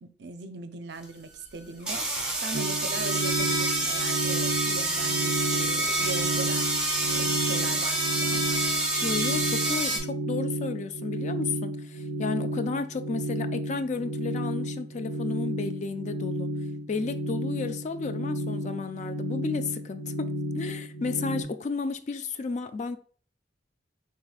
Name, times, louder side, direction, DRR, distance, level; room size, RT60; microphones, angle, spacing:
voice 1, 0.0-2.1 2.4-6.7 7.1-8.6, right 4 dB, 65° right, 0.5 m, -40 dB
sound 1, 1.0-1.1 1.8-10.0, right 2 dB, 5° right, 0.9 m, -27 dB
sound 2, 2.5-21.4, right 1 dB, 55° left, 1.6 m, -32 dB
voice 2, 9.0-16.5 16.9-23.0, left 4 dB, 40° left, 0.3 m, -33 dB
4.7 x 3.4 x 2.4 m
head